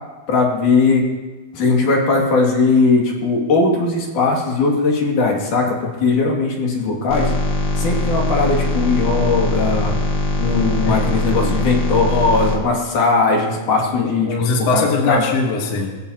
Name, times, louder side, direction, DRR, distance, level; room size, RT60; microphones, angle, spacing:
voice 1, 0.3-1.1 1.5-7.3 7.8-9.9 10.4-14.3 14.6-15.2, left 3 dB, 80° left, -1 dB, 4.0 m, -18 dB
sound 1, 7.1-12.6, left 2 dB, 45° left, 1.8 m, -21 dB
voice 2, 13.9-16.0, left 4 dB, 60° left, 1 dB, 2.3 m, -21 dB
23.0 x 15.0 x 2.9 m, 1.2 s
omnidirectional pair, 3.5 m